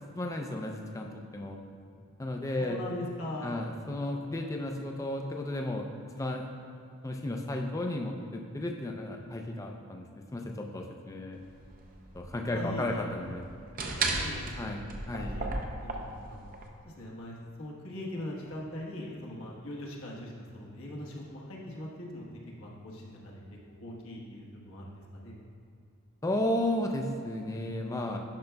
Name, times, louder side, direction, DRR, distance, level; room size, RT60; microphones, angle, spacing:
voice 1, 0.0-1.6 2.2-2.8 3.4-5.9 6.2-6.5 7.0-10.0 10.3-11.4 12.1-13.4 14.1-14.2 14.6-14.8 15.1-15.4 26.2-28.2, left 1 dB, 15° left, 2 dB, 0.4 m, -33 dB
voice 2, 2.6-3.6 12.5-13.1 14.2-14.8 15.2-16.4 16.8-22.3 22.6-23.4 23.8-25.5, left 1 dB, 75° left, -3 dB, 1.1 m, -41 dB
sound 1, 11.3-16.6, right 3 dB, 40° right, 0.5 m, -35 dB
10.5 x 5.7 x 2.2 m, 2.6 s
head